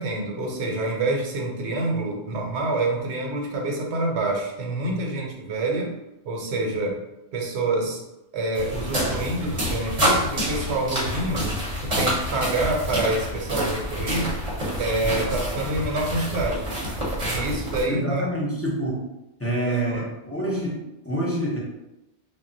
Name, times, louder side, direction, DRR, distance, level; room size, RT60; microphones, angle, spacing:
voice 1, 0.0-5.9 6.2-7.0 7.3-8.0 8.3-11.5 11.8-14.3 14.8-16.7 17.2-18.2 19.7-20.0, right 2 dB, 75° right, -1 dB, 0.9 m, -27 dB
sound 1, 8.5-17.8, equal, 40° right, 0.8 m, -27 dB
voice 2, 17.9-19.0 19.4-21.6, right 1 dB, 20° left, -6 dB, 0.4 m, -27 dB
2.3 x 2.0 x 3.7 m, 0.93 s
omnidirectional pair, 1.1 m